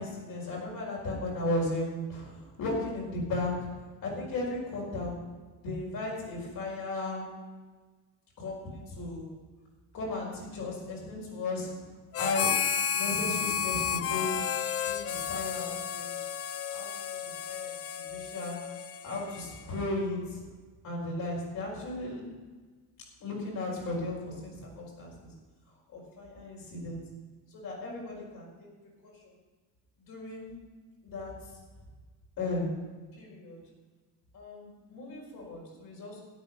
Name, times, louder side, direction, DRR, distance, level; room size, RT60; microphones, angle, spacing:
voice 1, 0.0-3.7 4.0-5.2 5.6-7.3 8.4-9.3 9.9-11.7 12.2-14.3 14.8-16.1 16.7-17.7 18.1-18.6 19.0-20.4 20.8-22.2 23.2-25.1 25.9-27.0 27.5-28.7 29.0-29.3 30.1-30.5 31.0-31.3 32.4-32.7 33.2-33.6 34.3-36.2, left 2 dB, 70° left, -3 dB, 5.1 m, -35 dB
Harmonica, 12.1-19.9, left 7 dB, 45° left, 0.6 m, -32 dB
13.0 x 10.0 x 5.5 m, 1.4 s
cardioid pair, 150°, 34 cm